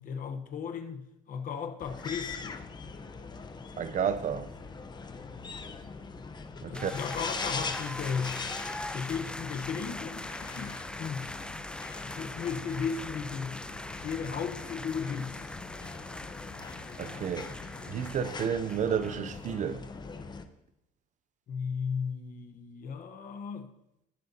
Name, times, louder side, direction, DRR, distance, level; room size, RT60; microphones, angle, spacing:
voice 1, 0.0-2.6 6.7-8.4 8.9-11.5 12.2-13.6 14.0-15.5 21.5-23.7, left 6 dB, 55° left, 1.1 m, -35 dB
sound 1, 1.8-20.4, left 4 dB, 25° left, 0.8 m, -42 dB
voice 2, 3.8-4.5 6.6-6.9 17.0-17.5 17.9-19.9, right 8 dB, 45° right, 0.6 m, -31 dB
sound 2, 6.7-19.4, left 1 dB, 5° left, 0.4 m, -42 dB
19.0 x 7.7 x 2.8 m
cardioid pair, 110°, 17 cm